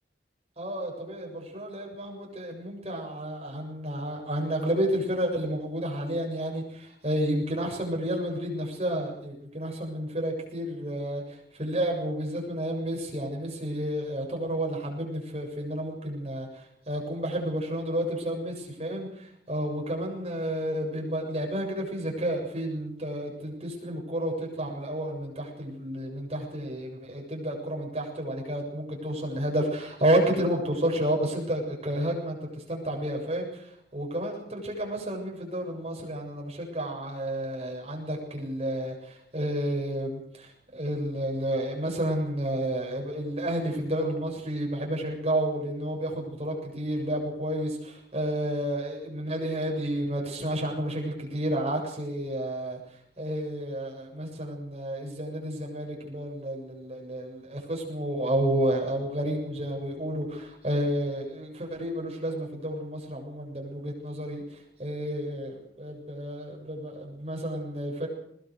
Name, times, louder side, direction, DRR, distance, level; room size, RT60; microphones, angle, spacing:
voice 1, 0.6-52.8 53.2-68.1, right 1 dB, 35° right, 0 dB, 7.3 m, -31 dB
21.5 x 21.0 x 6.7 m, 0.71 s
head